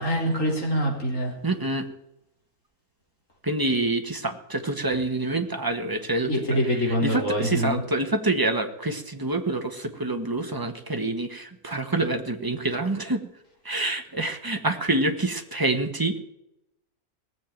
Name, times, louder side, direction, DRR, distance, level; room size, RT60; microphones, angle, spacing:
voice 1, 0.0-1.3 6.3-7.8, equal, 60° left, 1 dB, 4.5 m, -25 dB
voice 2, 1.4-1.9 3.4-13.2 13.6-16.2, right 2 dB, 15° right, 5 dB, 1.6 m, -27 dB
18.5 x 7.7 x 9.1 m, 0.86 s
omnidirectional pair, 1.5 m